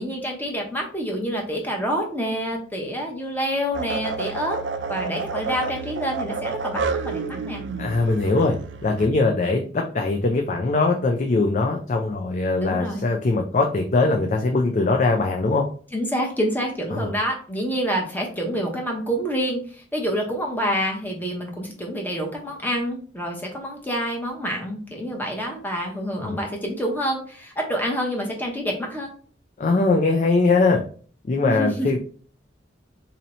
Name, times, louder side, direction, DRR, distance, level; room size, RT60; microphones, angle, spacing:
voice 1, 0.0-4.6 4.9-7.6 12.6-13.0 15.9-19.6 19.9-29.1 31.4-31.9, equal, 10° left, 0 dB, 0.8 m, -27 dB
sound 1, 3.7-9.1, right 4 dB, 70° right, 0.4 m, -30 dB
voice 2, 7.8-8.6 8.8-9.6 9.9-15.6 16.9-17.1 26.2-26.4 29.6-30.8 31.2-32.0, left 3 dB, 40° left, 2 dB, 0.4 m, -21 dB
2.8 x 2.7 x 4.2 m, 0.43 s
head